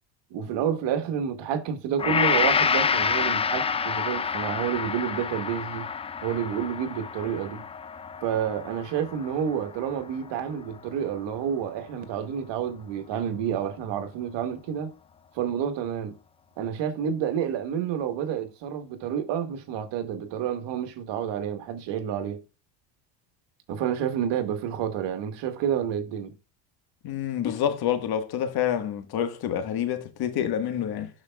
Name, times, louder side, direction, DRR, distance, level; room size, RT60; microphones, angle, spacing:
voice 1, 0.3-5.9 6.2-7.6 8.2-14.9 15.3-16.1 16.6-22.4 23.7-26.3, right 8 dB, 65° right, 1.6 m, -29 dB
Gong, 2.0-10.3 10.8-10.9, left 6 dB, 15° left, 0.3 m, -28 dB
voice 2, 27.0-31.1, left 9 dB, 50° left, 1.6 m, -27 dB
11.5 x 5.0 x 2.3 m
supercardioid pair, 90°, 47 cm